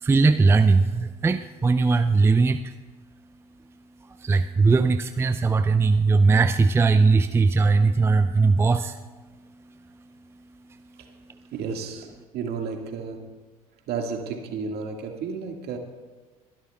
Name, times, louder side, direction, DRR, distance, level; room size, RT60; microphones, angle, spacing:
voice 1, 0.0-2.6 4.2-9.0, right 4 dB, 15° right, 10 dB, 0.4 m, -19 dB
voice 2, 11.5-12.1 12.3-13.3 13.9-15.8, right 5 dB, 55° right, 3 dB, 1.9 m, -32 dB
23.5 x 11.5 x 2.4 m, 1.3 s
hypercardioid pair, 65°, 19 cm